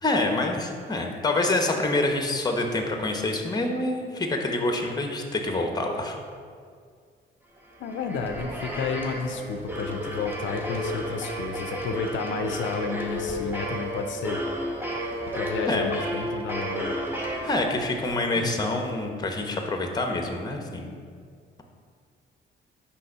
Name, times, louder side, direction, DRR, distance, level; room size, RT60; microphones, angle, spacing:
voice 1, 0.0-6.2 15.7-15.9 17.4-21.0, left 2 dB, 20° left, 3 dB, 0.8 m, -26 dB
sound 1, 7.6-18.1, equal, 10° right, 0.9 m, -32 dB
voice 2, 7.8-14.4 15.3-16.9 18.4-18.5, left 5 dB, 70° left, 6 dB, 0.4 m, -31 dB
5.4 x 3.3 x 5.5 m, 2.1 s
cardioid pair, 90°, 20 cm